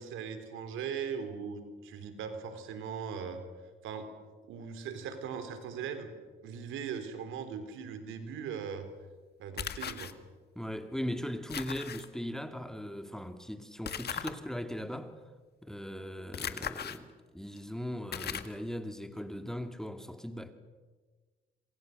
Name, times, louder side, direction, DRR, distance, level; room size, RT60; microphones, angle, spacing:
voice 1, 0.0-3.4 3.8-4.1 4.4-6.1 6.4-8.9 9.4-10.1, right 7 dB, 90° right, 3.7 m, -39 dB
sound 1, 9.6-10.1 11.5-12.1 13.9-14.3 16.3-17.0 17.6-17.7 18.1-18.6, left 8 dB, 55° left, 1.8 m, -37 dB
voice 2, 10.5-15.2 15.6-20.5, equal, 5° left, 2.5 m, -39 dB
27.5 x 26.5 x 6.7 m
cardioid pair, 90°, 20 cm